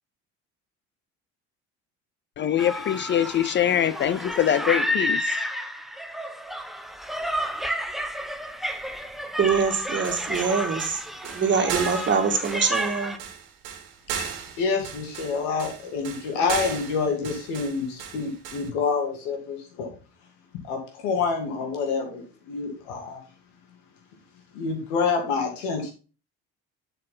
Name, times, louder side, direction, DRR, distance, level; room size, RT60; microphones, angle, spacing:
voice 1, 2.4-5.4, left 10 dB, 40° left, 0.4 m, -23 dB
sound 1, 2.6-13.2, equal, ahead, 0.9 m, -31 dB
voice 2, 9.4-11.0 11.3-13.2, right 5 dB, 35° right, 2.0 m, -24 dB
sound 2, 9.8-18.7, right 8 dB, 85° right, 1.7 m, -36 dB
voice 3, 14.6-19.9 20.6-23.2 24.5-25.9, left 5 dB, 85° left, 2.7 m, -27 dB
7.6 x 5.7 x 3.8 m
supercardioid pair, 85°, 31 cm